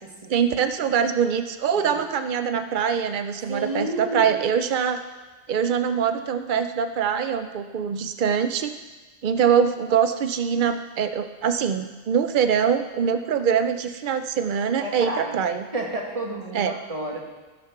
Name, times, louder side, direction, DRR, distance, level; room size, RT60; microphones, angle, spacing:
voice 1, 0.3-5.0 5.5-8.7 9.2-15.7 16.5-16.8, right 7 dB, 80° right, 9 dB, 0.4 m, -23 dB
voice 2, 1.8-2.1 3.5-4.4 14.8-15.4 15.7-17.2, right 1 dB, 25° right, 0 dB, 1.7 m, -31 dB
14.5 x 6.6 x 5.8 m, 1.3 s
omnidirectional pair, 1.5 m